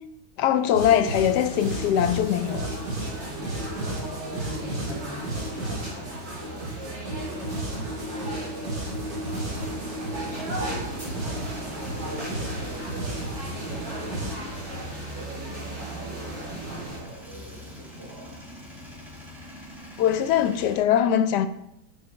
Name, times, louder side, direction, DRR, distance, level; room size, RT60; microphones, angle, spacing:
voice 1, 0.4-2.8 20.0-21.5, left 10 dB, 80° left, 1.2 m, -22 dB
sound 1, 0.7-14.3, right 1 dB, 85° right, 2.7 m, -33 dB
sound 2, 1.2-17.0, right 1 dB, 60° right, 4.1 m, -37 dB
voice 2, 3.3-7.6 8.0-9.1 9.4-18.4, equal, 45° right, 3.9 m, -43 dB
Male speech man speaking / Vehicle / Engine starting, 9.3-20.8, left 1 dB, ahead, 2.2 m, -46 dB
7.3 x 5.9 x 6.1 m
omnidirectional pair, 1.8 m